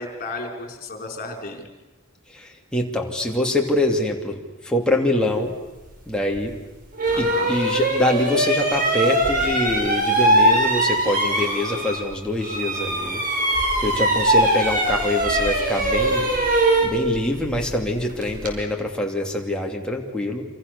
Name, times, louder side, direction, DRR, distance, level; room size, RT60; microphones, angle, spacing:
voice 1, 0.0-1.7 7.1-7.6, left 2 dB, 40° left, 3 dB, 5.0 m, -33 dB
voice 2, 2.3-5.5 6.1-6.5 7.2-13.2 13.5-16.3 16.8-20.4, left 1 dB, 5° left, 0 dB, 2.9 m, -24 dB
sound 1, 6.3-6.5 7.0-12.1 12.4-18.6, right 1 dB, 40° right, 5.3 m, -21 dB
27.5 x 27.0 x 7.0 m, 1.2 s
head